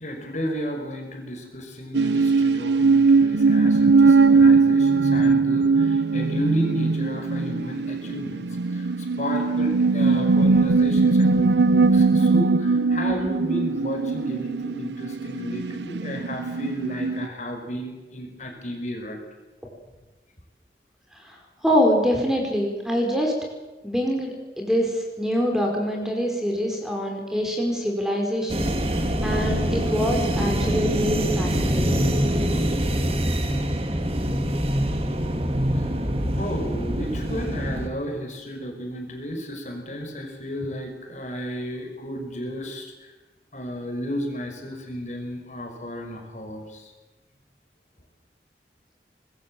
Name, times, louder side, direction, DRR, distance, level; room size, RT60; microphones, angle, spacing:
voice 1, 0.0-8.5 8.7-8.9 9.2-19.2 36.4-42.9 43.5-46.8, equal, 40° left, 3 dB, 5.4 m, -33 dB
sound 1, 1.9-17.3, right 4 dB, 85° right, 0.7 m, -20 dB
voice 2, 21.6-23.3 23.8-28.7 29.2-32.1, equal, 5° right, 1 dB, 5.1 m, -25 dB
sound 2, 28.5-37.9, equal, 35° right, 2.6 m, -24 dB
25.0 x 21.0 x 7.7 m, 1.2 s
head